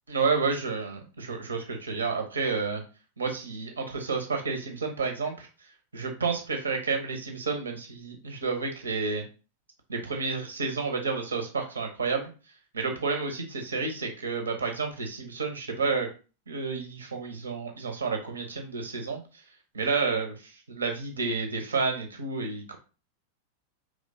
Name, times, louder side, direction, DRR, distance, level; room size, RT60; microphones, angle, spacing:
voice 1, 0.1-2.8 3.2-9.2 9.9-12.3 12.7-16.1 16.5-19.2 19.7-22.8, right 4 dB, 75° right, 4 dB, 0.9 m, -30 dB
4.9 x 3.2 x 2.7 m, 0.34 s
figure-of-eight pair, 90°, 0 cm